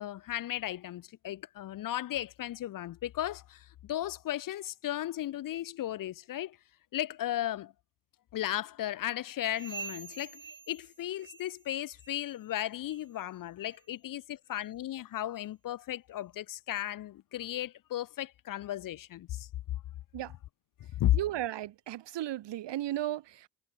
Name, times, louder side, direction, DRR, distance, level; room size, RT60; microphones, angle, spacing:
voice 1, 0.0-6.6 6.9-7.7 8.3-19.5 21.0-21.2, left 13 dB, 50° left, 0.5 m, -35 dB
sound 1, 9.5-11.7 12.0-12.4 12.8-13.1 13.7-13.8 14.5-14.6 15.4-15.5, right 5 dB, 25° right, 2.2 m, -46 dB
voice 2, 21.1-23.5, right 13 dB, 75° right, 1.6 m, -35 dB
cardioid pair, 140°, 43 cm